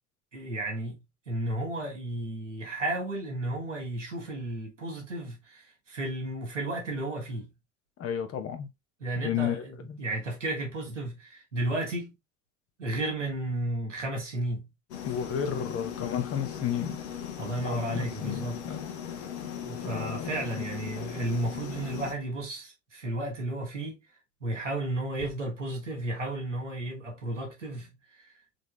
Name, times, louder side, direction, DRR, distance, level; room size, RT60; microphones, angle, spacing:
voice 1, 0.3-1.0 1.3-7.5 9.0-12.1 12.8-14.7 17.4-18.7 19.6-24.0 24.4-28.3, right 1 dB, 85° right, 1.3 m, -33 dB
voice 2, 8.0-8.7 9.1-10.0 15.0-17.0 17.6-18.9 19.8-20.3, left 9 dB, 40° left, 1.0 m, -32 dB
sound 1, 14.9-22.1, left 8 dB, 65° left, 1.0 m, -38 dB
3.9 x 3.5 x 3.2 m
figure-of-eight pair, 60°, 35 cm